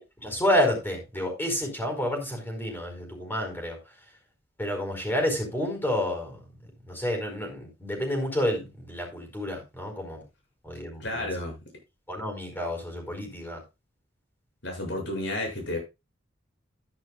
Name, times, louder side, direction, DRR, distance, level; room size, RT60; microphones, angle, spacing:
voice 1, 0.2-3.8 4.6-6.4 6.8-10.2 10.6-11.3 12.1-13.6, left 1 dB, 10° left, 3 dB, 4.8 m, -29 dB
voice 2, 11.0-11.5 14.6-15.8, left 1 dB, 65° left, 1 dB, 7.3 m, -31 dB
13.0 x 10.5 x 2.4 m, 0.25 s
head